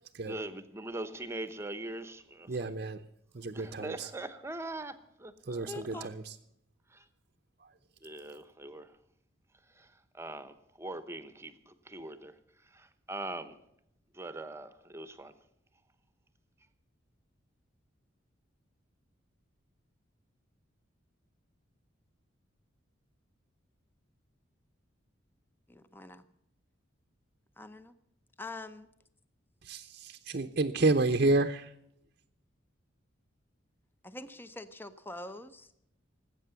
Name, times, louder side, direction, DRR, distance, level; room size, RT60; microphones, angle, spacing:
voice 1, 0.2-2.7 3.5-5.7 5.9-6.1 6.9-7.1 8.0-8.9 9.8-12.3 12.7-13.6 14.1-15.3, right 2 dB, 15° right, 1.0 m, -42 dB
voice 2, 2.5-3.0 3.3-4.1 5.5-6.2 29.7-29.8 30.3-31.7, right 2 dB, 45° right, 0.7 m, -29 dB
voice 3, 5.7-6.1 25.7-26.2 27.6-27.9 28.4-28.9 34.0-35.8, left 2 dB, 10° left, 0.7 m, -44 dB
19.0 x 8.6 x 6.9 m
head